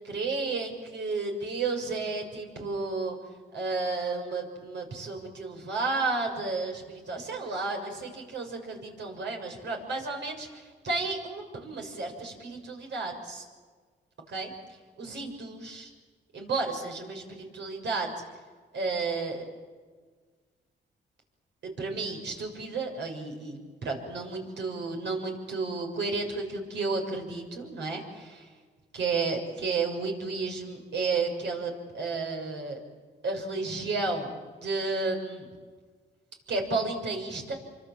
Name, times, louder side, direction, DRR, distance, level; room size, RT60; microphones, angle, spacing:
voice 1, 0.0-3.2 3.5-13.4 14.3-14.5 15.0-15.9 16.3-18.1 18.7-19.4 21.6-28.5 28.9-32.8 33.2-35.5 36.5-37.6, right 3 dB, 75° right, 2 dB, 6.7 m, -32 dB
28.0 x 25.5 x 7.7 m, 1.5 s
cardioid pair, 75°, 19 cm